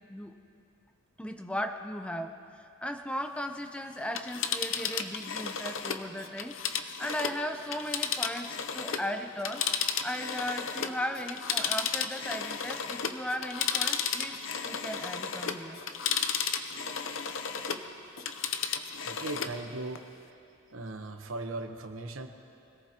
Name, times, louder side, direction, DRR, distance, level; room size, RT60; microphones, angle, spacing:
voice 1, 1.2-14.4 14.6-15.8, equal, 5° left, 6 dB, 0.7 m, -37 dB
Telephone, 4.0-9.1 9.4-17.9 18.2-19.6 19.9-20.0, left 7 dB, 70° left, 0.7 m, -33 dB
voice 2, 18.2-18.6 19.0-20.0 20.7-22.3, right 2 dB, 80° right, 6 dB, 1.1 m, -38 dB
24.5 x 18.0 x 3.0 m, 2.6 s
head